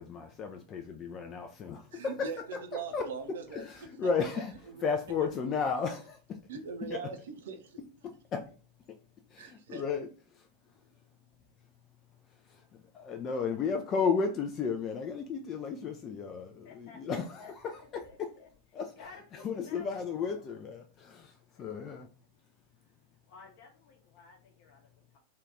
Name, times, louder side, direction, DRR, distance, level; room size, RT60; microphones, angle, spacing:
voice 1, 0.0-2.3 2.9-4.5 4.8-6.5 6.8-7.0 8.0-8.5 8.9-9.0 9.3-10.1 10.4-10.5 12.3-12.6 12.9-18.3 18.7-18.9 19.3-22.1, left 5 dB, 30° left, 0.3 m, -34 dB
voice 2, 1.9-2.4 2.7-3.9 4.7-4.8 5.2-5.3 6.5-7.8 9.4-9.8, right 6 dB, 60° right, 0.5 m, -41 dB
voice 3, 16.6-18.5 19.0-20.4 21.5-21.8 22.8-22.9 23.3-25.2, left 5 dB, 50° left, 0.9 m, -54 dB
2.7 x 2.3 x 3.2 m
figure-of-eight pair, 90°, 0 cm